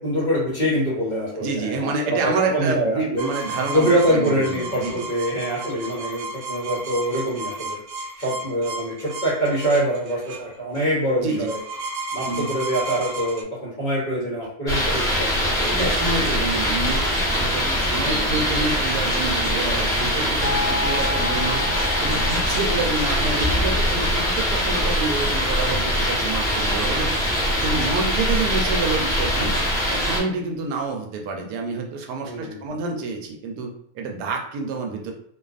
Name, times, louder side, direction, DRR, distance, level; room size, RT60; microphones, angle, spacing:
voice 1, 0.0-3.2 3.7-7.8 8.1-11.6 12.1-16.1 16.8-17.1 18.0-18.4 32.2-32.6, equal, 40° left, -7 dB, 0.8 m, -25 dB
voice 2, 1.4-5.1 11.2-11.5 12.3-12.5 15.7-21.6 22.0-27.1 27.4-29.5 29.9-35.1, right 3 dB, 90° right, 2 dB, 1.2 m, -28 dB
sound 1, 3.2-13.4, right 2 dB, 65° right, 0.9 m, -33 dB
sound 2, 14.7-30.2, equal, 5° left, 0.7 m, -22 dB
sound 3, 20.4-25.2, left 2 dB, 75° left, 1.0 m, -33 dB
2.6 x 2.4 x 2.4 m, 0.68 s
omnidirectional pair, 1.7 m